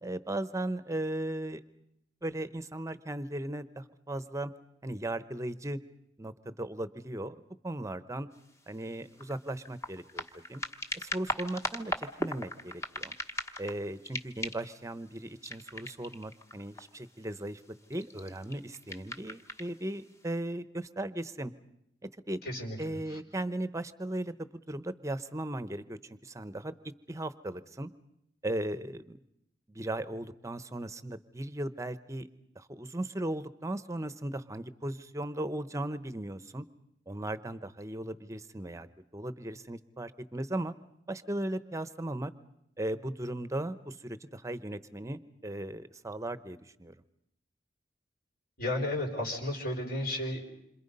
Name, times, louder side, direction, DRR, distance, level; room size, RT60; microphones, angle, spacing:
voice 1, 0.0-1.6 2.2-4.5 4.8-5.8 6.2-7.3 7.6-8.3 8.7-10.6 10.9-13.1 13.6-17.6 17.9-21.5 22.3-22.4 22.8-26.7 27.1-27.9 28.4-29.2 29.7-32.3 32.6-36.6 37.1-38.9 39.1-40.7 41.1-42.3 42.8-46.9, right 1 dB, 15° right, 13 dB, 0.9 m, -37 dB
sound 1, 8.4-8.5 8.9-13.8 14.0-14.8 15.4-17.1 17.8-19.7 20.3-20.4, left 1 dB, 15° left, 1.1 m, -38 dB
voice 2, 22.4-23.2 48.6-50.4, left 1 dB, 55° left, 1 dB, 4.7 m, -33 dB
27.5 x 26.0 x 5.4 m, 0.78 s
head